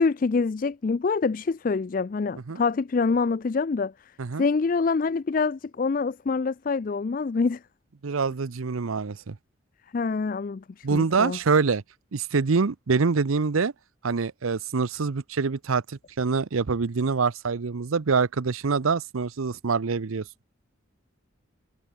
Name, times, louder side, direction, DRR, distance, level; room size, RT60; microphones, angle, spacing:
voice 1, 0.0-3.9 4.4-7.6 9.9-11.4, left 4 dB, 40° left, 0.4 m, -25 dB
voice 2, 8.0-9.4 10.8-11.8 12.1-13.7 14.0-20.3, right 4 dB, 90° right, 0.7 m, -25 dB
head